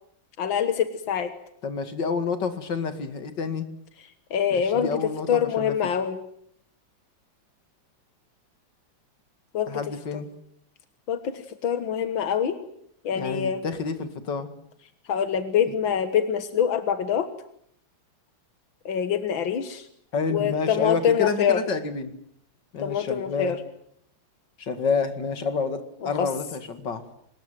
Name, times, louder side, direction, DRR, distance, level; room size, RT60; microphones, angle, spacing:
voice 1, 0.4-1.3 4.3-5.0 5.3-6.2 9.5-9.7 11.1-12.6 13.0-13.6 15.1-17.3 18.9-19.9 20.3-21.6 22.8-23.6 26.0-26.3, left 8 dB, 90° left, 10 dB, 2.2 m, -25 dB
voice 2, 1.6-3.7 4.5-5.7 9.7-10.3 13.1-14.5 20.1-22.1 22.7-23.6 24.6-27.1, left 5 dB, 65° left, 9 dB, 2.9 m, -29 dB
24.5 x 21.0 x 9.2 m, 0.71 s
omnidirectional pair, 2.1 m